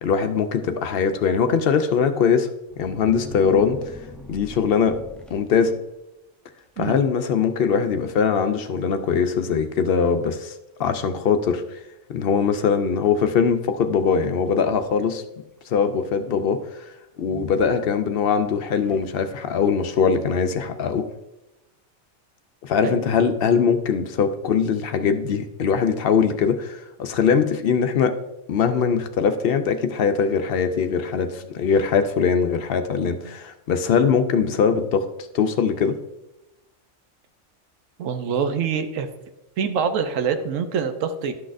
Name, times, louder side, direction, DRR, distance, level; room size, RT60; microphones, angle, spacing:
voice 1, 0.0-2.5 2.8-3.8 4.3-5.0 5.3-5.8 6.8-10.5 10.8-11.6 12.1-15.2 15.7-16.6 17.2-21.0 22.6-28.2 28.5-35.1 35.3-36.0, left 6 dB, 60° left, 8 dB, 0.7 m, -21 dB
sound 1, 2.7-6.0 6.6-6.8 7.2-7.6 7.8-7.9 8.7-8.8 9.3-9.4 10.0-10.4 11.2-11.3 14.2-15.2 17.2-18.2 18.7-19.5, left 2 dB, ahead, 0.6 m, -43 dB
voice 2, 38.0-39.1 39.6-41.3, right 6 dB, 85° right, 8 dB, 1.0 m, -25 dB
11.0 x 6.1 x 2.5 m, 0.94 s
omnidirectional pair, 1.3 m